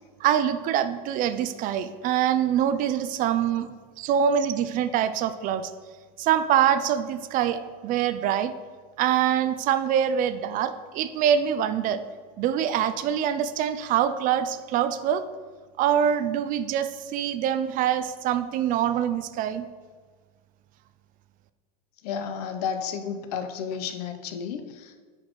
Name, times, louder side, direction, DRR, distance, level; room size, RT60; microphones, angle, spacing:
voice 1, 0.2-3.7 4.0-5.7 6.2-8.5 9.0-12.0 12.4-15.2 15.8-19.7, right 9 dB, 45° right, 12 dB, 0.4 m, -24 dB
voice 2, 22.0-25.0, left 7 dB, 80° left, 8 dB, 0.7 m, -32 dB
9.6 x 4.3 x 3.1 m, 1.5 s
supercardioid pair, 115°, 20 cm